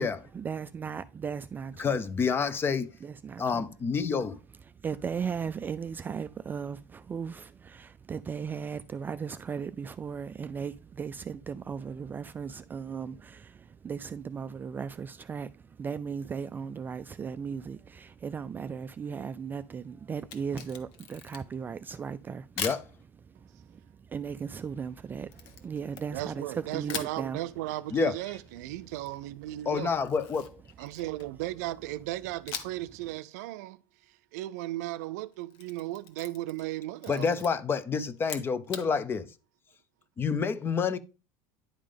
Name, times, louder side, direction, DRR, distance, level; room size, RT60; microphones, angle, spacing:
voice 1, 0.0-2.0 3.0-3.6 4.8-22.6 23.7-23.8 24.1-27.4, right 6 dB, 20° right, 0.3 m, -37 dB
voice 2, 1.8-2.9 3.4-4.4 22.6-22.8 27.9-28.2 29.7-30.6 37.1-39.3 40.2-41.0, left 5 dB, 25° left, 0.7 m, -28 dB
Camera, 20.2-21.6 22.6-22.9 25.3-26.5 26.9-27.2 29.9-31.4 32.5-32.9 33.2-33.3 35.3-36.7 37.0-37.5 38.2-38.9, left 7 dB, 70° left, 1.3 m, -40 dB
voice 3, 26.1-29.9 30.8-33.8 34.3-37.3, right 16 dB, 80° right, 0.5 m, -36 dB
10.5 x 3.7 x 5.1 m
supercardioid pair, 115°, 9 cm